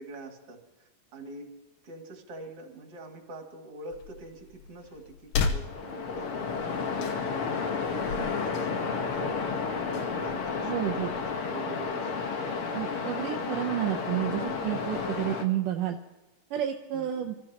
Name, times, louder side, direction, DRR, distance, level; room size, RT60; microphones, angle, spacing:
voice 1, 0.0-1.5 1.8-7.3 7.9-11.0 11.4-12.3 16.9-17.3, right 2 dB, 45° right, 2 dB, 3.2 m, -45 dB
sound 1, 3.9-11.4, left 5 dB, 80° left, 2.7 m, -37 dB
Waves surf, 5.6-15.4, left 5 dB, 55° left, 1.7 m, -32 dB
voice 2, 10.6-11.1 12.7-16.0 16.5-17.4, right 12 dB, 75° right, 2 dB, 2.4 m, -30 dB
29.5 x 14.0 x 3.0 m, 1.1 s
omnidirectional pair, 3.8 m